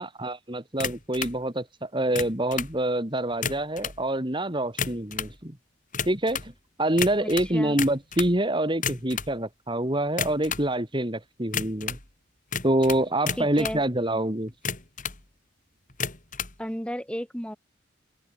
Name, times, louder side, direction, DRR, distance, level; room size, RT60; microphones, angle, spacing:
voice 1, 0.0-5.6 6.1-6.5 6.8-12.0 12.6-14.5, right 1 dB, 25° right, 2.8 m, -26 dB
sound 1, 0.8-1.4 2.0-2.8 3.3-4.0 4.6-5.4 5.9-6.5 7.0-8.4 8.7-9.3 10.1-10.7 11.5-12.1 12.5-13.8 14.5-15.2 15.9-16.6, left 6 dB, 40° left, 5.2 m, -32 dB
voice 2, 7.2-7.8 13.4-13.8 16.6-17.6, equal, 5° left, 4.9 m, -33 dB
open air
head